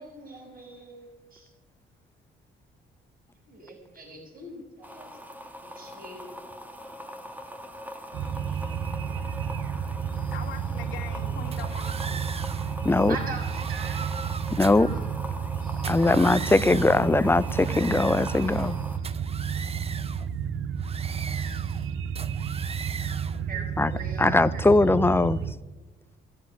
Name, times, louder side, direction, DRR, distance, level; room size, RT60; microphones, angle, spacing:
voice 1, 0.0-1.5 3.5-5.1 5.6-6.3 13.1-14.1 14.7-15.0 15.6-16.4 21.2-21.6 23.0-24.6, right 3 dB, 45° right, 5.2 m, -42 dB
sound 1, 4.8-19.0, equal, 10° right, 1.6 m, -42 dB
sound 2, 8.1-25.5, right 7 dB, 85° right, 0.8 m, -31 dB
voice 2, 10.1-12.3, left 8 dB, 75° left, 2.1 m, -42 dB
sound 3, 11.5-12.7 13.3-14.9 15.7-17.1 17.5-18.7 19.0-20.3 20.8-21.9 22.2-23.4, right 5 dB, 30° right, 0.6 m, -39 dB
voice 3, 12.8-13.2 14.5-14.9 15.9-18.8 23.8-23.9 24.2-25.4, left 2 dB, 10° left, 0.5 m, -21 dB
15.0 x 7.6 x 9.7 m
cardioid pair, 90°, 20 cm